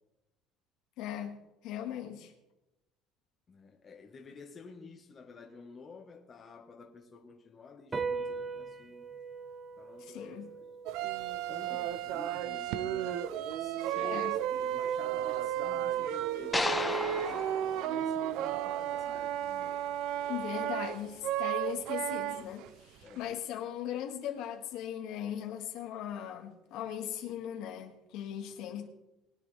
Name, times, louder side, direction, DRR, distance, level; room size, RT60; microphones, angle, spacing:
voice 1, 1.0-2.3 10.0-10.5 14.0-14.3 20.3-28.9, left 10 dB, 65° left, 1.9 m, -39 dB
voice 2, 3.5-9.1 9.8-11.0 11.5-19.8 23.0-23.4, left 4 dB, 25° left, 1.3 m, -52 dB
sound 1, 7.9-14.6, right 4 dB, 15° right, 0.7 m, -42 dB
sound 2, 10.9-22.7 23.0-23.3, right 11 dB, 70° right, 0.6 m, -33 dB
sound 3, 16.5-18.9, left 2 dB, 10° left, 1.1 m, -35 dB
21.5 x 10.0 x 3.4 m
cardioid pair, 160°, 0 cm